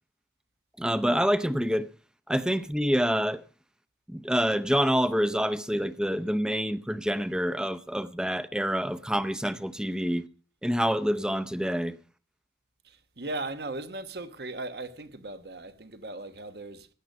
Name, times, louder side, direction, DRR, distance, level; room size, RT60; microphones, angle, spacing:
voice 1, 0.8-1.9 2.3-3.4 4.1-10.2 10.6-12.0, equal, 5° right, 0.6 m, -27 dB
voice 2, 12.8-16.9, right 2 dB, 65° right, 1.2 m, -38 dB
15.5 x 10.5 x 5.4 m
head